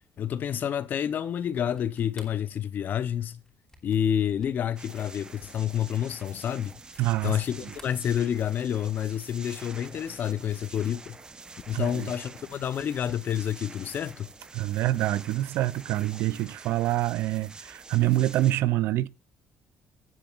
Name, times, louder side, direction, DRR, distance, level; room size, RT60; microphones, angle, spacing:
voice 1, 0.2-3.4 3.8-6.7 7.2-11.2 11.7-14.3, left 9 dB, 55° left, 0.9 m, -29 dB
sound 1, 1.5-7.4 7.7-8.7, left 2 dB, 15° left, 3.0 m, -56 dB
sound 2, 4.8-18.5, right 3 dB, 20° right, 0.9 m, -47 dB
voice 2, 7.0-7.4 11.7-12.1 14.5-19.1, right 15 dB, 80° right, 0.5 m, -26 dB
16.5 x 7.7 x 2.5 m
cardioid pair, 115°, 4 cm